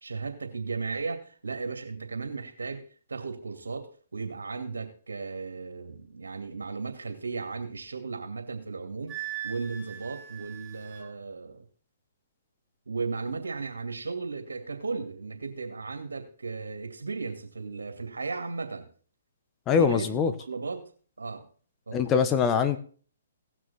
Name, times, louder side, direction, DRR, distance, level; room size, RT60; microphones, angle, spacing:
voice 1, 0.0-9.1 9.4-11.6 12.9-18.9 19.7-20.1 20.5-20.9 21.2-21.4 21.9-22.1, right 4 dB, 85° right, 2.5 m, -35 dB
Wind instrument woodwind instrument, 9.1-11.1, right 12 dB, 20° right, 2.5 m, -40 dB
voice 2, 19.7-20.3 21.9-22.8, left 6 dB, 20° left, 1.2 m, -23 dB
17.5 x 6.3 x 4.2 m
hypercardioid pair, 135°, 0 cm